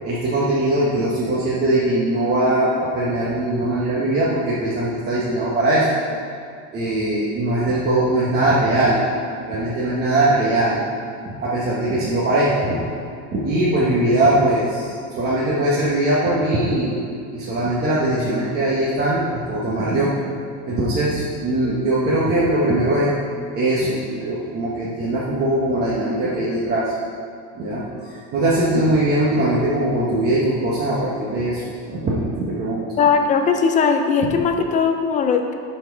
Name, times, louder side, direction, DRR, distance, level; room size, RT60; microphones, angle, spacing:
voice 1, 0.0-5.9 6.7-9.0 9.4-10.8 11.3-12.8 13.3-17.0 17.3-20.1 20.7-23.1 23.5-26.8 27.5-32.9, right 1 dB, 30° right, -7 dB, 1.1 m, -21 dB
voice 2, 33.0-35.5, left 6 dB, 20° left, 5 dB, 0.4 m, -19 dB
11.0 x 4.4 x 4.6 m, 2.3 s
cardioid pair, 160°, 35 cm